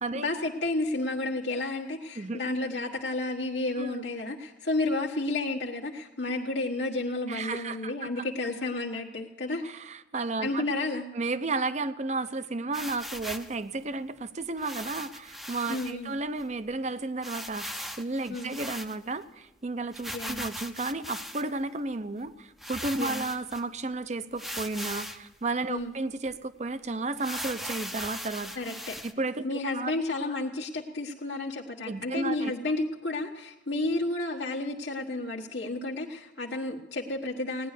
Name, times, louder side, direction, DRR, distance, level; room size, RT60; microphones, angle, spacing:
voice 1, 0.1-9.6 10.4-11.1 15.7-16.1 18.3-18.6 20.1-20.4 23.0-23.2 25.7-25.9 28.6-29.0 29.4-37.7, left 2 dB, 80° left, -3 dB, 1.3 m, -31 dB
voice 2, 7.3-8.2 9.6-10.6 11.1-28.6 29.0-29.9 31.8-32.5, right 3 dB, 40° right, 12 dB, 0.6 m, -33 dB
sound 1, 12.7-13.5 14.6-15.9 16.4-16.5 16.7-16.8 17.2-19.2 19.9-21.6 22.2-22.3 22.6-23.6 24.4-25.3 25.8-25.9 26.3-26.4 27.2-29.1, equal, ahead, 0.6 m, -39 dB
17.0 x 10.0 x 6.6 m, 0.99 s
head